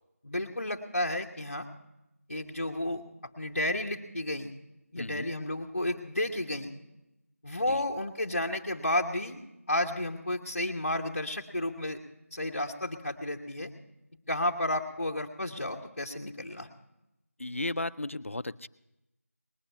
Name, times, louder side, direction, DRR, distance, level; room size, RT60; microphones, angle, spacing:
voice 1, 0.2-1.7 2.3-3.0 3.4-4.5 4.9-6.7 7.4-9.4 9.7-12.0 12.3-13.7 14.3-16.7, left 1 dB, 40° left, 1 dB, 1.0 m, -32 dB
voice 2, 5.0-5.3 7.7-7.8 17.4-18.7, left 2 dB, 55° left, 14 dB, 0.5 m, -35 dB
19.5 x 10.0 x 5.7 m, 0.90 s
figure-of-eight pair, 175°, 8 cm